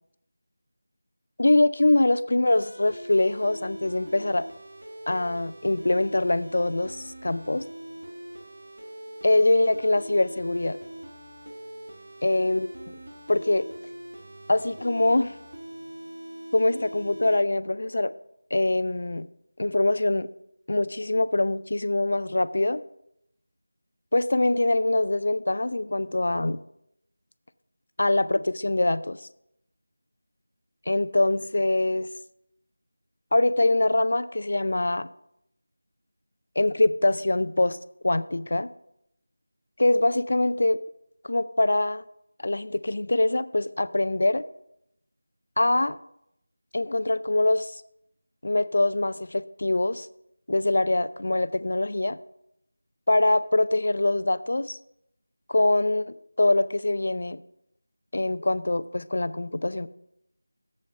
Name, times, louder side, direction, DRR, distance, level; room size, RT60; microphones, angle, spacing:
voice 1, 1.4-4.5 5.1-7.6 9.2-10.8 12.2-13.0 13.3-13.7 14.5-15.3 16.5-18.1 18.5-19.3 19.6-20.3 20.7-22.8 24.1-26.6 28.0-29.2 30.9-32.1 33.3-35.1 36.6-37.8 38.0-38.7 39.8-40.8 41.2-42.0 42.4-44.4 45.6-46.0 46.7-47.8 48.4-50.1 50.5-52.2 53.1-54.8 55.5-57.4 58.1-59.9, left 2 dB, 60° left, 15 dB, 0.4 m, -23 dB
sound 1, 2.5-17.4, right 1 dB, 65° right, 1.3 m, -42 dB
7.6 x 5.3 x 6.4 m, 0.78 s
figure-of-eight pair, 175°, 0 cm